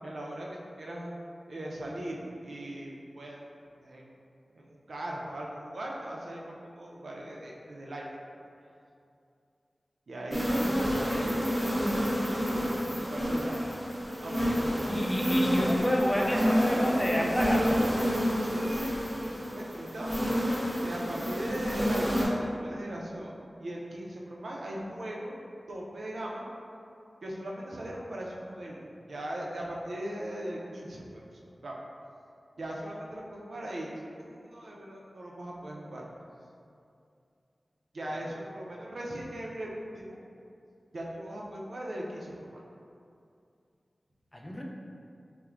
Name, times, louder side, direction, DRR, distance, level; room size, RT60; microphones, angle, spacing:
voice 1, 0.0-1.2 1.5-4.1 4.5-8.1 8.4-8.5 10.1-11.6 12.4-13.6 14.2-15.0 15.7-17.9 18.4-20.1 20.5-23.3 23.6-25.3 25.7-26.4 27.2-31.2 31.6-31.8 32.6-36.0 37.9-40.2 40.9-42.6, right 1 dB, 80° right, -3 dB, 0.4 m, -39 dB
sound 1, 10.3-22.3, equal, 20° right, 0.7 m, -29 dB
voice 2, 14.9-17.7 44.3-44.6, equal, 20° left, -1 dB, 0.4 m, -29 dB
4.2 x 2.1 x 2.4 m, 2.4 s
cardioid pair, 45°, 0 cm